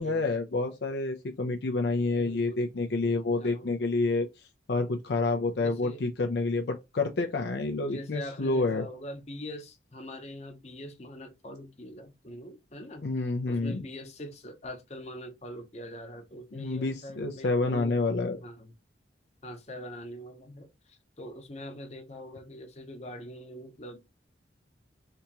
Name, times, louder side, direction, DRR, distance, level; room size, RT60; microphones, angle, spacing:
voice 1, 0.0-4.3 4.7-8.9 13.0-13.8 16.5-18.4, left 3 dB, 65° left, 0.5 m, -28 dB
voice 2, 2.2-2.6 3.4-3.7 5.6-6.0 7.8-13.1 13.4-18.0 18.4-18.7 19.4-24.0, left 1 dB, 35° left, 0.7 m, -43 dB
3.4 x 2.8 x 2.8 m
head